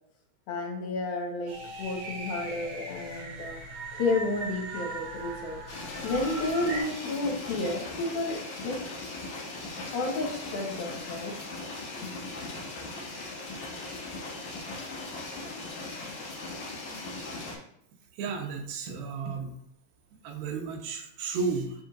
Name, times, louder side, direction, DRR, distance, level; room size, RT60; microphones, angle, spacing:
voice 1, 0.5-3.6 3.9-5.6 6.0-8.4 8.6-8.8 9.9-11.3 11.9-12.1 12.4-12.5, left 2 dB, 80° left, 0 dB, 2.9 m, -31 dB
sound 1, 1.5-6.8, right 2 dB, 55° right, 2.3 m, -39 dB
sound 2, 5.7-17.6, left 2 dB, 60° left, 2.6 m, -39 dB
voice 2, 18.2-19.5 20.2-21.7, right 4 dB, 85° right, 3 dB, 2.7 m, -33 dB
10.5 x 3.7 x 2.5 m, 0.74 s
omnidirectional pair, 4.2 m